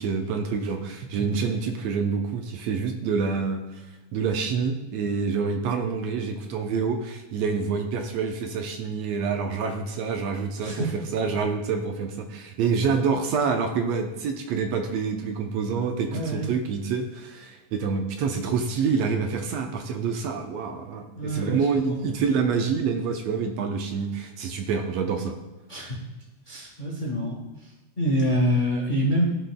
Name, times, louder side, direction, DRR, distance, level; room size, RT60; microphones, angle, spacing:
voice 1, 0.0-3.8 4.1-25.4, right 5 dB, 75° right, 4 dB, 1.8 m, -27 dB
voice 2, 10.6-10.9 16.1-16.5 21.2-22.0 25.7-26.0 26.5-27.4 28.0-29.2, equal, 55° left, -4 dB, 0.5 m, -26 dB
16.0 x 5.9 x 2.2 m, 1.0 s
omnidirectional pair, 3.4 m